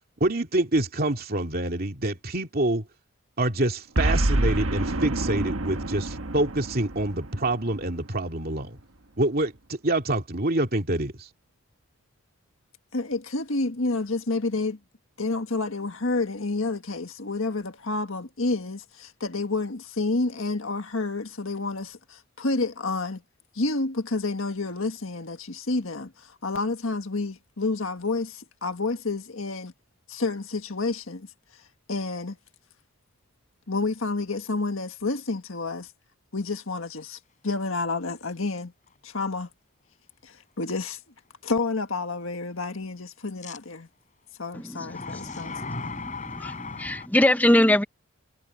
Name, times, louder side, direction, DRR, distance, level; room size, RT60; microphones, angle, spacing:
voice 1, 0.2-2.8 3.4-8.8 9.2-11.3, right 1 dB, 45° right, 2.7 m, -26 dB
Boom, 3.9-8.3, right 1 dB, 75° right, 1.5 m, -27 dB
voice 2, 12.9-14.8 15.2-23.2 23.5-29.7 30.1-31.3 31.9-32.4 33.7-35.9 36.3-38.7 39.0-39.5 40.2-41.0 41.4-43.9 44.4-45.5, left 3 dB, 70° left, 1.7 m, -29 dB
sound 1, 38.1-38.3 38.9-39.0 43.4-43.6 44.8-47.1, left 3 dB, 35° left, 4.4 m, -36 dB
voice 3, 44.5-47.8, left 1 dB, 10° left, 0.7 m, -24 dB
head